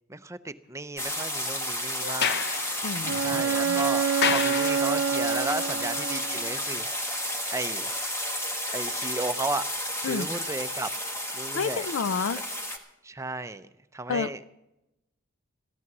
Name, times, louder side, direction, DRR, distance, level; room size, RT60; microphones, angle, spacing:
voice 1, 0.1-2.4 3.2-6.9 7.5-7.9 8.7-9.6 10.0-10.9 11.3-11.9 13.0-13.7 13.9-14.4, right 2 dB, 15° right, 11 dB, 0.6 m, -34 dB
sound 1, 1.0-12.8, left 1 dB, 15° left, 1.5 m, -32 dB
Sliding door, 2.0-5.3, left 7 dB, 55° left, 0.8 m, -31 dB
voice 2, 2.8-3.8 10.0-10.3 11.5-12.4 14.1-14.5, left 5 dB, 80° left, 16 dB, 0.4 m, -30 dB
Bowed string instrument, 3.0-6.6, right 7 dB, 75° right, 0.6 m, -27 dB
15.0 x 12.5 x 6.1 m, 0.92 s
head